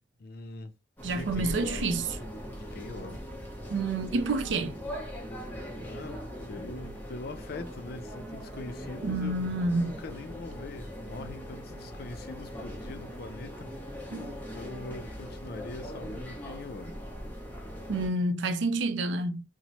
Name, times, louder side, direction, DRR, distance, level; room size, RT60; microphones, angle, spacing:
voice 1, 0.2-0.7 1.1-2.0 2.5-3.3 5.8-6.2 6.5-14.3 14.5-17.0, left 3 dB, 55° left, 0.4 m, -43 dB
sound 1, 1.0-18.1, equal, 10° left, 0.6 m, -40 dB
voice 2, 1.0-2.0 3.7-4.8 9.0-9.9 14.1-14.3 17.9-19.4, right 2 dB, 75° right, 0.4 m, -29 dB
2.9 x 2.1 x 2.8 m
head